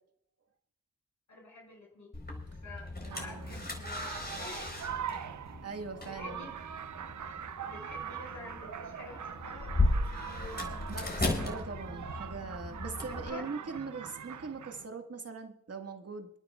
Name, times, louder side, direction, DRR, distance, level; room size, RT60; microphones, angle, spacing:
voice 1, 1.3-2.1 2.6-2.9 3.2-5.2 6.0-6.5 7.6-10.3 11.0-11.1 13.1-13.5, left 2 dB, 80° left, -1 dB, 6.2 m, -49 dB
sound 1, 2.1-13.3, left 2 dB, 35° left, 4.4 m, -36 dB
voice 2, 3.0-3.5 5.6-6.5 10.9-16.3, right 4 dB, 55° right, 4 dB, 1.9 m, -41 dB
sound 2, 3.1-14.9, right 8 dB, 75° right, 0.7 m, -42 dB
29.5 x 9.9 x 2.4 m, 0.72 s
cardioid pair, 50°, 30 cm